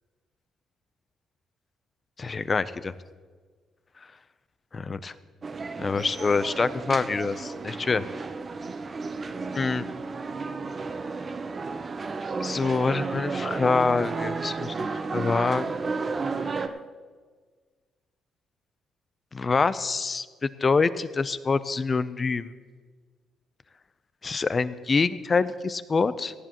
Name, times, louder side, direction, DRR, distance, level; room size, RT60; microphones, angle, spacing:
voice 1, 2.2-2.9 4.7-5.1 5.8-8.0 9.5-9.9 12.4-15.7 16.4-16.7 19.3-22.5 24.2-26.3, left 4 dB, 35° left, 14 dB, 0.6 m, -26 dB
sound 1, 5.4-16.7, right 4 dB, 35° right, 0.8 m, -32 dB
18.0 x 14.5 x 3.0 m, 1.5 s
cardioid pair, 90°, 0 cm